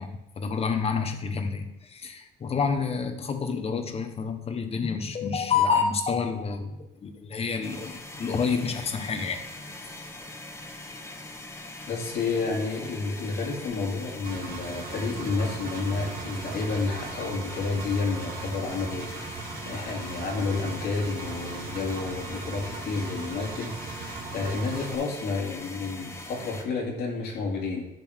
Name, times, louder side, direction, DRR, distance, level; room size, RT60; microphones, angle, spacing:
voice 1, 0.0-10.0, left 5 dB, 35° left, 7 dB, 1.2 m, -29 dB
sound 1, 7.6-26.6, left 2 dB, 15° left, 1.4 m, -42 dB
voice 2, 11.9-27.9, left 4 dB, 70° left, -1 dB, 2.5 m, -30 dB
Engine, 14.2-25.0, right 4 dB, 60° right, 1.5 m, -39 dB
11.0 x 4.2 x 6.5 m, 0.90 s
cardioid pair, 110°, 17 cm